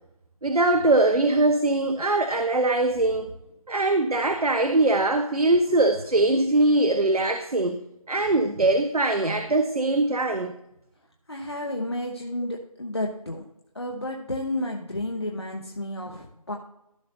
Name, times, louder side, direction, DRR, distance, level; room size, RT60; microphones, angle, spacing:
voice 1, 0.4-3.3 3.7-7.8 8.1-10.5, right 2 dB, 80° right, 7 dB, 1.0 m, -22 dB
voice 2, 11.3-13.4 13.7-16.6, left 1 dB, 45° left, 1 dB, 1.1 m, -31 dB
15.0 x 5.6 x 2.7 m, 0.82 s
figure-of-eight pair, 180°, 19 cm